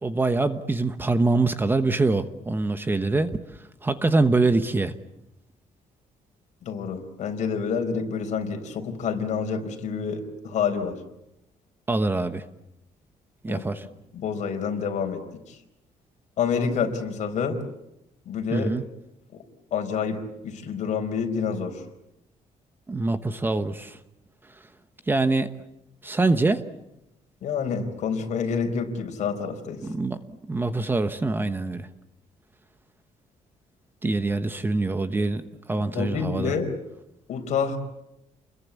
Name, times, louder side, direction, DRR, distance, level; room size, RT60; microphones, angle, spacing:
voice 1, 0.0-3.4 3.8-4.9 11.9-12.4 13.4-13.8 18.5-18.8 22.9-24.0 25.1-25.5 26.0-26.6 29.8-30.2 30.5-31.9 34.0-35.4 35.7-36.5, right 3 dB, 15° right, 10 dB, 1.1 m, -24 dB
voice 2, 6.6-11.0 13.5-13.6 14.1-15.2 15.5-15.6 16.4-17.6 18.3-18.7 19.3-19.4 19.7-20.2 20.4-21.8 27.4-29.8 35.7-36.7 37.3-37.8, left 6 dB, 60° left, 5 dB, 4.5 m, -28 dB
29.5 x 22.0 x 8.4 m, 0.87 s
cardioid pair, 170°, 13 cm